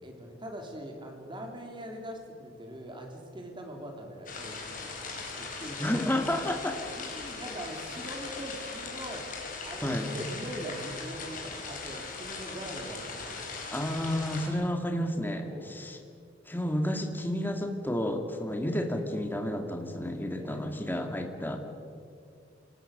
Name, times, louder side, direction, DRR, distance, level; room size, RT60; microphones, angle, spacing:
voice 1, 0.0-5.0 5.3-5.8 7.0-9.4 9.6-13.6 15.5-15.8 20.3-20.6, right 1 dB, 25° right, 2 dB, 3.4 m, -42 dB
sound 1, 4.3-14.5, left 4 dB, 45° left, 4.6 m, -39 dB
voice 2, 5.8-6.8 9.8-10.1 13.7-16.0 16.5-21.6, left 1 dB, 10° left, 5 dB, 1.9 m, -31 dB
26.0 x 19.0 x 6.6 m, 2.4 s
head